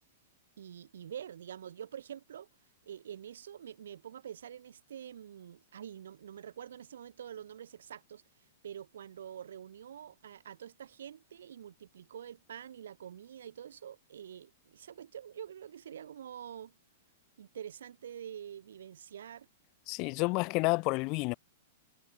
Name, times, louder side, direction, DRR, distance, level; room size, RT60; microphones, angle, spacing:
voice 1, 0.6-2.5 2.8-8.2 8.6-16.7 17.4-19.5, right 9 dB, 60° right, 4.7 m, -46 dB
voice 2, 19.9-21.3, left 27 dB, 40° left, 0.8 m, -30 dB
figure-of-eight pair, 100°, 0 cm